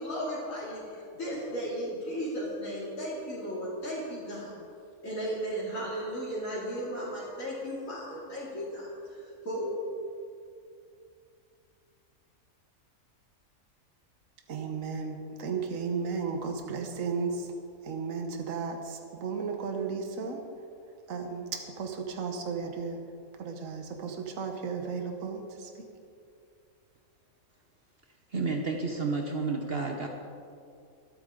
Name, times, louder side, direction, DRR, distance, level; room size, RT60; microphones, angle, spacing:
voice 1, 0.0-4.5 5.0-9.8, equal, 65° left, -9 dB, 3.2 m, -35 dB
voice 2, 14.5-17.5 17.8-20.4 21.1-23.0 23.4-25.7, right 5 dB, 65° right, 3 dB, 1.5 m, -34 dB
voice 3, 28.3-30.1, right 4 dB, 45° right, 2 dB, 1.1 m, -30 dB
24.5 x 8.7 x 3.8 m, 2.4 s
omnidirectional pair, 1.5 m